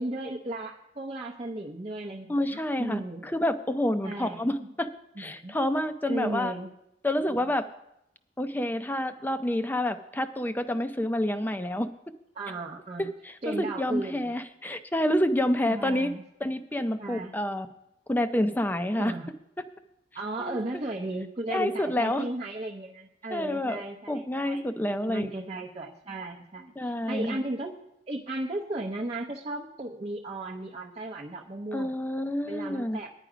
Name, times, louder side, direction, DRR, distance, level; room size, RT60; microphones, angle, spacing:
voice 1, 0.0-3.3 4.0-4.7 5.2-5.6 6.1-6.7 7.3-7.4 12.3-13.1 13.4-14.3 15.6-16.5 17.0-17.4 19.0-19.3 20.1-24.6 25.1-27.7 28.1-31.9 32.5-33.2, right 2 dB, 35° right, -3 dB, 0.7 m, -35 dB
voice 2, 2.3-4.9 5.2-6.5 7.0-7.7 8.4-11.9 13.0-16.1 16.4-17.7 18.1-19.1 20.4-20.6 21.5-22.2 23.3-25.3 26.8-27.4 31.7-33.0, left 1 dB, 10° left, 9 dB, 0.5 m, -28 dB
10.5 x 10.0 x 5.0 m, 0.81 s
head